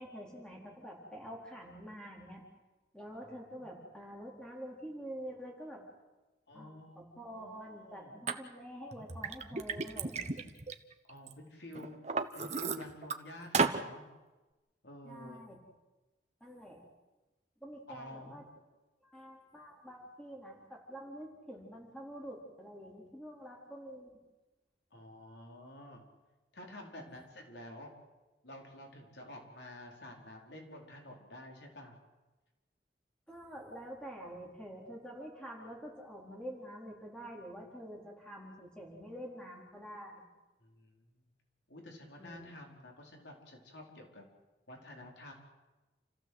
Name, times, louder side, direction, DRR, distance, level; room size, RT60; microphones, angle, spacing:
voice 1, 0.0-2.4 2.9-5.8 6.5-10.2 15.0-15.6 16.4-16.8 17.6-18.4 19.0-24.2 33.3-40.2 42.2-42.6, equal, 5° left, -1 dB, 4.3 m, -47 dB
voice 2, 3.2-3.7 6.5-8.1 11.1-11.9 12.3-14.1 14.8-15.5 17.9-18.4 24.9-26.0 26.5-27.9 28.4-31.9 40.6-41.2 41.7-44.2 44.7-45.3, left 1 dB, 80° left, 1 dB, 4.7 m, -50 dB
Liquid, 8.3-8.4 8.9-11.3 11.7-13.2 13.5-13.8, right 4 dB, 40° right, 1.2 m, -33 dB
29.0 x 15.5 x 8.1 m, 1.1 s
head